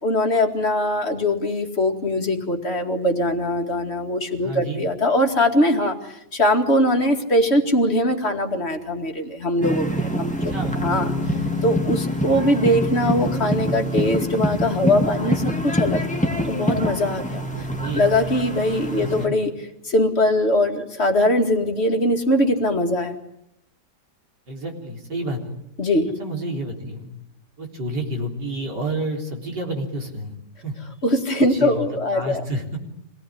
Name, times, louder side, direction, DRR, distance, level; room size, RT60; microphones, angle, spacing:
voice 1, 0.0-10.5 10.8-11.1 11.6-17.4 17.9-19.5 19.8-23.2 25.8-26.1 31.0-32.4, left 1 dB, 40° left, 3 dB, 2.5 m, -21 dB
voice 2, 4.4-4.9 10.5-10.8 17.5-18.0 19.0-19.3 24.5-25.4 26.2-27.1 27.6-30.3 30.6-30.8 31.5-31.9 32.1-32.8, right 1 dB, 80° right, 1 dB, 4.6 m, -29 dB
sound 1, 9.6-19.3, equal, 5° left, 1.8 m, -25 dB
26.0 x 18.0 x 10.0 m, 0.81 s
omnidirectional pair, 1.8 m